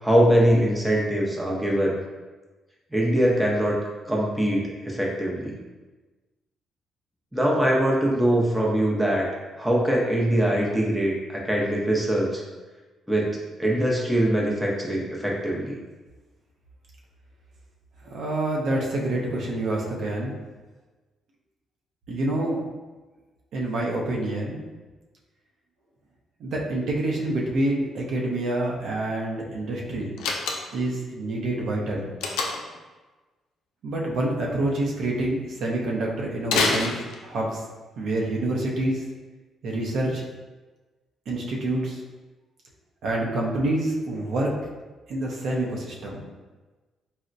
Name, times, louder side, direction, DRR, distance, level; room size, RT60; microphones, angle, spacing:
voice 1, 0.0-2.0 2.9-3.7 4.0-5.6 7.3-9.3 9.6-12.4 13.1-15.7, right 1 dB, 5° right, -3 dB, 0.6 m, -22 dB
voice 2, 18.0-20.3 22.1-22.6 23.5-24.6 26.4-30.2 30.7-32.2 33.8-37.6 38.0-39.0 39.6-40.2 41.3-42.0 43.0-44.6 45.1-46.2, right 1 dB, 70° right, -2 dB, 0.6 m, -27 dB
Slam, 30.2-30.9 32.2-32.8 36.4-37.5, left 4 dB, 90° left, 0.4 m, -26 dB
4.0 x 2.1 x 2.5 m, 1.2 s
cardioid pair, 90°, 0 cm